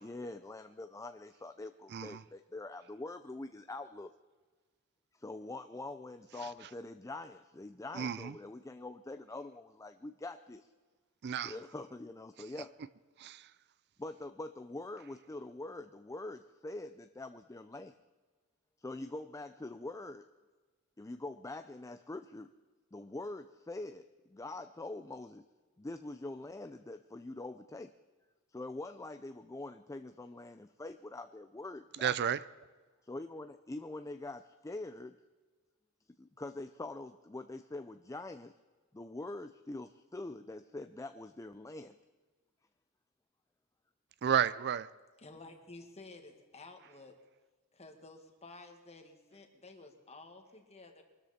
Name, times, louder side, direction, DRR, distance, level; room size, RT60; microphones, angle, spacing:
voice 1, 0.0-4.1 5.1-10.7 11.4-12.7 14.0-17.9 18.8-20.3 21.0-22.5 22.9-25.4 25.8-27.9 28.5-32.1 33.0-35.2 36.2-38.5 38.9-42.0, left 2 dB, 15° left, 0.4 m, -44 dB
voice 2, 1.9-2.2 6.4-6.7 7.9-8.4 11.2-11.6 12.4-12.5 13.2-13.6 31.9-32.5 44.2-44.9, right 8 dB, 50° right, 0.4 m, -33 dB
voice 3, 45.2-47.2 47.7-51.0, left 2 dB, 30° left, 1.9 m, -53 dB
23.5 x 13.0 x 4.3 m
head